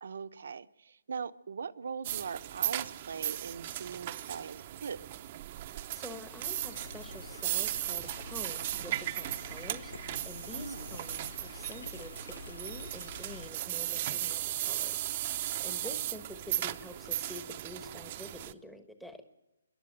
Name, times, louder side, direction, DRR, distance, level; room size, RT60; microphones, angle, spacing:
voice 1, 0.0-5.0 10.5-10.9 15.6-15.9, right 6 dB, 65° right, 12 dB, 0.8 m, -41 dB
sound 1, 2.0-18.5, right 14 dB, 35° right, 0.7 m, -37 dB
voice 2, 5.9-9.9 10.2-15.0 15.6-19.2, left 1 dB, 5° left, 8 dB, 1.2 m, -47 dB
sound 2, 6.1-13.5, left 3 dB, 70° left, 0.8 m, -48 dB
26.5 x 11.0 x 9.0 m, 0.92 s
hypercardioid pair, 155°, 0 cm